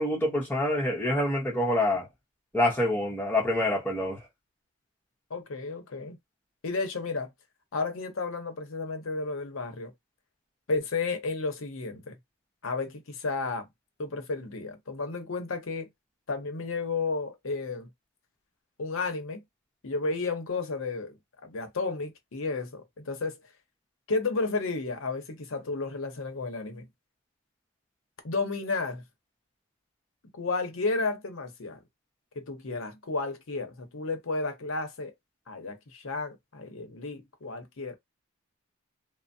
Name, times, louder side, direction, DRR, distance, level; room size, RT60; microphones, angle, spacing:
voice 1, 0.0-2.1 2.5-4.2, left 1 dB, 10° left, 0.9 m, -26 dB
voice 2, 5.3-6.2 6.6-7.3 7.7-9.9 10.7-12.2 12.6-13.7 14.0-15.9 16.3-17.9 18.8-19.4 19.8-23.4 24.1-26.9 28.2-29.0 30.3-31.8 32.4-35.1 35.5-37.9, left 3 dB, 75° left, 0.7 m, -32 dB
3.2 x 2.0 x 2.6 m
head